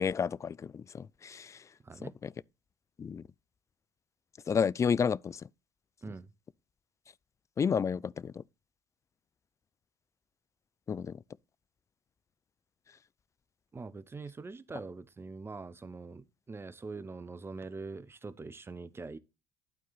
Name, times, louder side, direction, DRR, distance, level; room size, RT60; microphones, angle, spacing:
voice 1, 0.0-1.6 2.0-2.3 3.0-3.2 4.5-5.4 7.6-8.4 10.9-11.2, left 6 dB, 30° left, 0.4 m, -31 dB
voice 2, 1.8-2.1 6.0-6.3 13.7-19.2, right 4 dB, 20° right, 0.8 m, -43 dB
11.5 x 4.6 x 4.1 m
hypercardioid pair, 60°, 11 cm